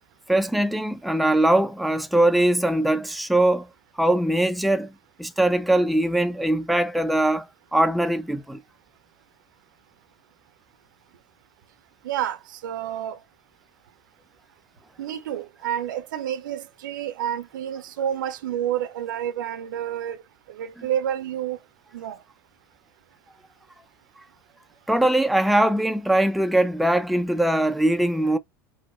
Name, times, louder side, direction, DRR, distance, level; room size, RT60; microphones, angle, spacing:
voice 1, 0.3-3.7 4.0-4.9 5.2-8.6 24.9-28.4, right 1 dB, ahead, 0.5 m, -21 dB
voice 2, 12.0-13.2 15.0-20.2 20.5-21.6 21.9-22.2, right 10 dB, 70° right, 0.7 m, -29 dB
4.9 x 2.1 x 4.2 m
hypercardioid pair, 80°, 11 cm